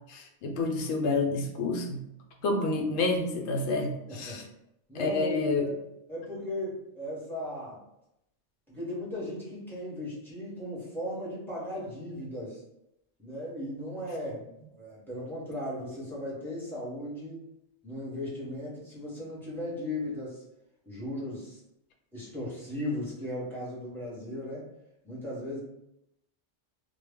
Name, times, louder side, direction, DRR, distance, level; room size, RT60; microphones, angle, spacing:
voice 1, 0.1-2.0 2.4-4.4 4.9-5.6, left 3 dB, 75° left, 1 dB, 0.8 m, -29 dB
voice 2, 4.1-4.4 4.9-5.8 6.1-7.8 8.7-12.6 13.2-14.4 14.8-17.4 17.8-20.4 20.8-21.6 22.1-24.6 25.0-25.6, left 1 dB, ahead, -7 dB, 0.7 m, -37 dB
2.2 x 2.0 x 3.5 m, 0.83 s
omnidirectional pair, 1.2 m